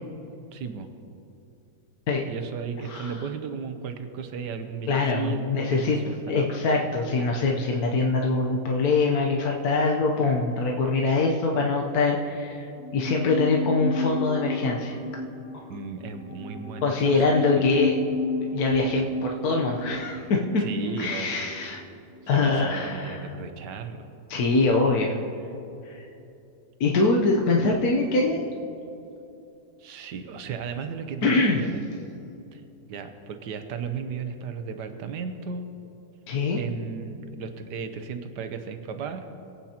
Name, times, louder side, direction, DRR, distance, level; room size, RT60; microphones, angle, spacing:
voice 1, 0.5-0.9 2.3-6.5 15.7-17.6 20.6-21.4 22.3-24.1 29.8-31.8 32.5-32.6 32.9-35.7 36.5-39.3, right 6 dB, 75° right, 7 dB, 1.4 m, -35 dB
voice 2, 4.9-15.0 15.5-15.7 16.8-18.0 18.5-20.6 21.0-21.8 22.3-23.3 24.3-25.2 25.9-26.1 26.8-28.4 31.2-31.6 36.3-36.6, left 3 dB, 65° left, -1 dB, 1.3 m, -24 dB
sound 1, 12.8-22.1 22.4-22.5, left 2 dB, 15° right, 2.2 m, -33 dB
21.5 x 8.9 x 2.9 m, 2.7 s
omnidirectional pair, 1.9 m